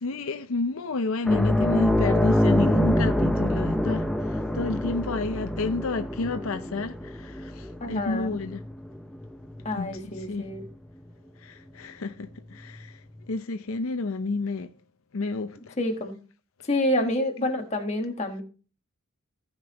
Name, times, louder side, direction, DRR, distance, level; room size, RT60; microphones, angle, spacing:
voice 1, 0.0-4.1 4.5-8.6 9.8-10.4 11.4-12.9 13.3-14.7 15.1-15.7 17.0-17.1, left 3 dB, 80° left, 0.6 m, -30 dB
sound 1, 1.3-10.2 10.5-10.7 12.8-12.9, left 1 dB, ahead, 0.5 m, -26 dB
voice 2, 7.8-8.4 9.6-10.6 15.8-16.2 16.7-18.4, left 1 dB, 35° left, 1.3 m, -28 dB
15.0 x 5.3 x 3.0 m
head